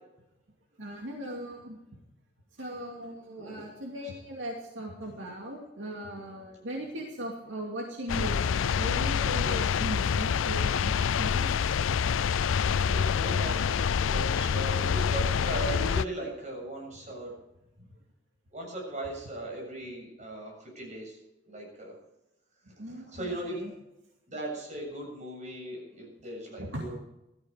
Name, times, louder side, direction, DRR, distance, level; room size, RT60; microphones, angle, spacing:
voice 1, 0.8-1.8 2.5-11.5 22.8-23.7 26.6-26.8, right 1 dB, 75° right, 0 dB, 2.5 m, -38 dB
sound 1, 8.1-16.0, left 7 dB, 85° left, 0.4 m, -27 dB
voice 2, 12.8-17.3 17.8-17.9 18.5-21.2 21.4-21.9 22.7-23.8 24.3-27.0, right 1 dB, 35° right, -1 dB, 7.5 m, -38 dB
17.0 x 13.5 x 5.1 m, 0.90 s
head